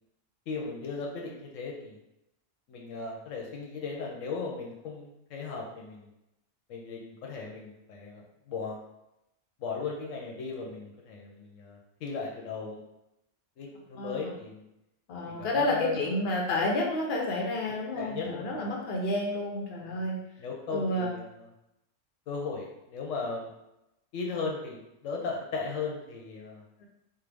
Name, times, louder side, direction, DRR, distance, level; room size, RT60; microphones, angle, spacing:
voice 1, 0.5-1.9 2.7-6.1 6.7-8.8 9.6-12.8 13.6-14.6 15.3-16.1 17.6-18.6 19.8-20.0 20.4-21.5 22.3-23.5 24.1-26.6, left 4 dB, 80° left, -1 dB, 1.0 m, -37 dB
voice 2, 14.0-14.3 15.1-20.2 20.7-21.1, left 1 dB, 55° left, -1 dB, 0.9 m, -30 dB
4.4 x 2.1 x 3.3 m, 0.89 s
omnidirectional pair, 1.3 m